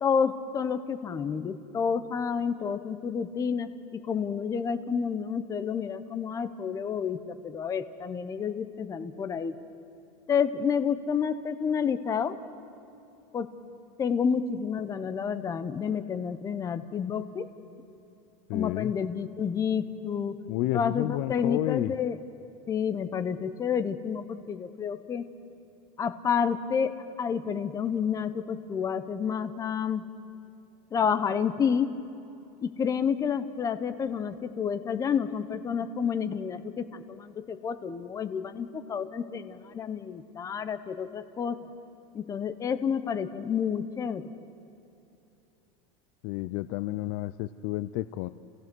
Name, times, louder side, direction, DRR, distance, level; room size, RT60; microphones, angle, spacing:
voice 1, 0.0-9.6 10.3-12.4 13.3-13.5 14.0-17.5 18.5-20.4 20.7-22.2 22.7-25.3 26.0-30.0 30.9-32.0 32.6-41.6 42.1-44.2, left 7 dB, 20° left, 11 dB, 0.8 m, -29 dB
voice 2, 18.5-18.9 20.5-21.9 46.2-48.3, left 17 dB, 50° left, 14 dB, 0.5 m, -31 dB
29.0 x 16.0 x 6.1 m, 2.8 s
supercardioid pair, 145°, 16 cm